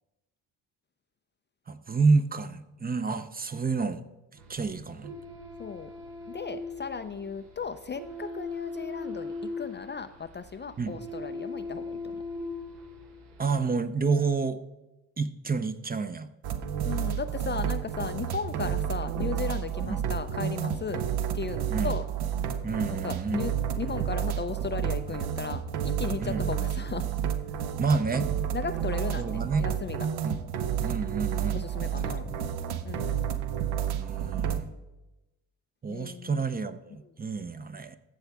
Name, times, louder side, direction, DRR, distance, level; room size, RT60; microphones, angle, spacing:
voice 1, 1.7-4.0 4.5-5.1 10.8-11.0 13.4-14.6 15.2-16.3 19.9-20.0 21.7-21.9 22.6-23.8 26.2-26.5 27.8-28.3 29.2-29.7 30.2-30.4 30.8-31.6 32.3-32.5 33.9-34.7 35.8-38.0, right 4 dB, 25° right, 11 dB, 0.6 m, -29 dB
sound 1, 4.4-13.7, left 2 dB, 85° right, 1.5 m, -40 dB
voice 2, 5.6-5.9 6.3-12.2 16.8-21.0 21.3-22.0 22.9-27.1 28.5-30.1 31.5-32.3 32.8-33.2 35.9-36.4, left 6 dB, 30° left, 10 dB, 0.4 m, -36 dB
sound 2, 16.4-34.6, right 9 dB, 70° right, 0.8 m, -30 dB
14.0 x 7.1 x 3.5 m, 1.0 s
cardioid pair, 80°, 40 cm